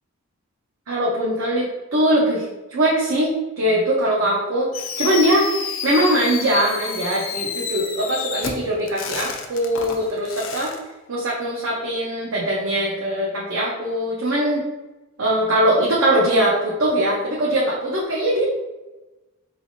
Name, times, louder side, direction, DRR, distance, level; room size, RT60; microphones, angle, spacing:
voice 1, 0.9-4.7 5.0-5.5 5.8-10.7 11.1-14.6 15.2-18.4, right 1 dB, 70° right, -4 dB, 0.6 m, -21 dB
Fireworks, 4.7-10.8, left 6 dB, 65° left, 0.5 m, -30 dB
4.0 x 3.2 x 2.6 m, 1.1 s
head